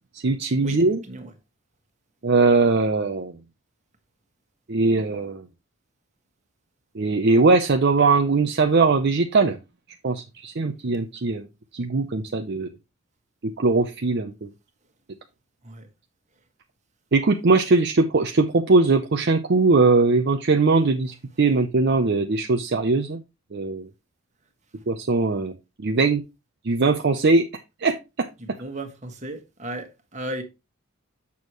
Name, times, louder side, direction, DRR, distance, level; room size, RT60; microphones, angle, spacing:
voice 1, 0.1-1.0 2.2-3.4 4.7-5.4 6.9-9.6 10.0-11.4 11.7-12.7 13.4-14.5 17.1-23.2 23.5-23.9 24.9-25.5 25.8-26.2 26.6-27.4 27.8-28.3, right 3 dB, 50° right, 0.6 m, -20 dB
voice 2, 28.4-30.4, right 1 dB, 35° right, 1.4 m, -35 dB
7.0 x 6.3 x 3.0 m
head